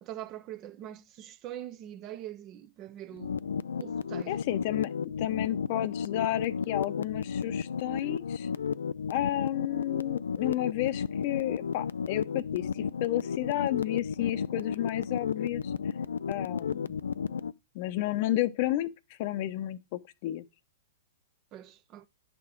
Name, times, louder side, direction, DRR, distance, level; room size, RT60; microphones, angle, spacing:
voice 1, 0.0-3.5 3.8-4.4 21.5-22.1, right 12 dB, 35° right, 0.8 m, -43 dB
sound 1, 3.2-17.5, left 6 dB, 75° left, 0.4 m, -33 dB
voice 2, 4.3-4.9 5.2-8.5 9.1-15.6 16.3-16.9 17.7-18.9 19.2-20.4, left 14 dB, 50° left, 0.8 m, -31 dB
10.5 x 6.1 x 3.8 m
hypercardioid pair, 115°, 0 cm